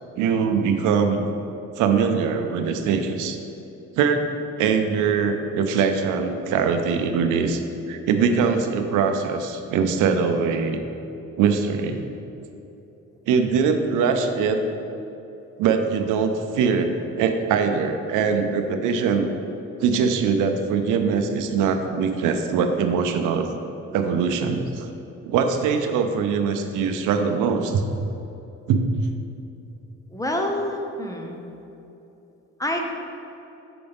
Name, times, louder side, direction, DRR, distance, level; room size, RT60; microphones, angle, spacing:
voice 1, 0.2-1.3 1.8-3.4 4.0-4.2 4.6-10.8 11.4-12.0 13.3-14.6 15.6-19.3 19.8-23.5 23.9-24.9 25.2-27.8 28.7-28.8, right 6 dB, 90° right, 6 dB, 0.5 m, -22 dB
voice 2, 30.1-31.4 32.6-32.8, left 1 dB, 10° left, 1 dB, 0.7 m, -27 dB
5.8 x 5.3 x 3.4 m, 2.9 s
cardioid pair, 90°, 30 cm